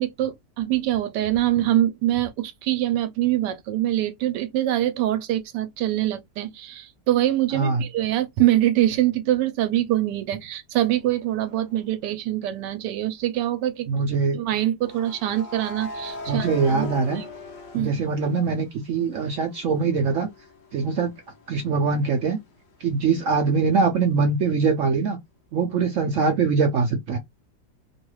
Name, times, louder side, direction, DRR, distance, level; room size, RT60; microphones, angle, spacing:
voice 1, 0.0-13.9 14.3-17.3 17.7-18.0, right 13 dB, 85° right, 1.2 m, -24 dB
voice 2, 7.5-7.8 13.9-14.4 16.3-17.2 17.7-20.3 20.7-21.1 21.5-22.4 22.8-25.2 25.5-27.2, right 4 dB, 70° right, 0.7 m, -22 dB
sound 1, 11.5-11.8 14.8-18.7 19.1-22.7, left 2 dB, 60° left, 0.7 m, -40 dB
3.0 x 2.3 x 3.0 m
omnidirectional pair, 1.8 m